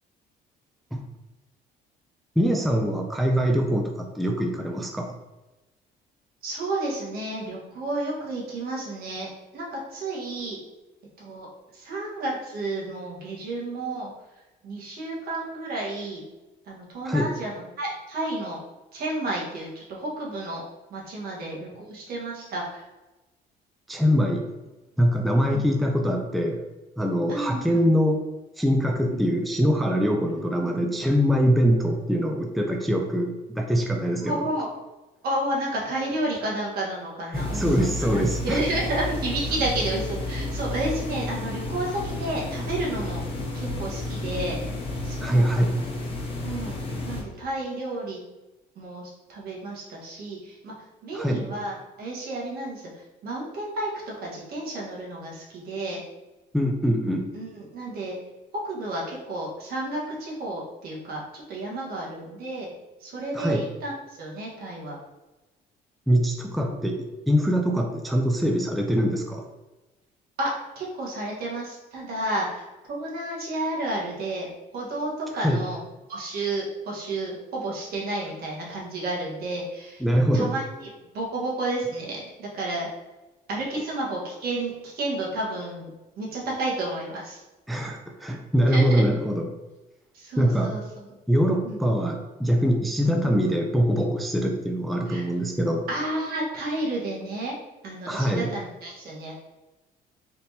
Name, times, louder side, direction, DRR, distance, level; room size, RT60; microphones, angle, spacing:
voice 1, 2.4-5.1 17.1-17.3 23.9-24.5 25.0-26.6 27.0-28.2 28.6-34.5 37.3-38.6 45.2-45.7 51.1-51.4 56.5-57.4 63.3-63.6 66.1-69.5 75.4-75.6 80.0-80.5 87.7-89.5 90.4-90.7 91.3-95.9 98.1-98.5, equal, ahead, 2 dB, 0.4 m, -23 dB
voice 2, 6.4-10.6 11.2-14.1 14.6-16.2 16.7-18.6 18.9-20.6 20.9-22.8 25.5-25.6 27.3-27.9 29.0-29.2 30.3-30.8 34.2-34.8 35.2-43.2 43.5-44.6 45.0-45.5 46.4-48.2 48.7-50.7 51.0-56.0 57.3-58.1 58.5-62.7 63.0-65.0 70.4-75.8 76.1-80.0 80.3-80.9 81.1-82.9 83.5-85.9 86.2-87.4 88.7-89.0 90.1-90.8 91.6-91.9 93.0-93.1 95.1-95.2 95.9-97.6 97.8-99.3, right 2 dB, 65° right, -3 dB, 1.4 m, -31 dB
sound 1, 37.3-47.2, left 2 dB, 35° left, 1.3 m, -31 dB
4.1 x 3.4 x 2.8 m, 1.1 s
cardioid pair, 110°, 17 cm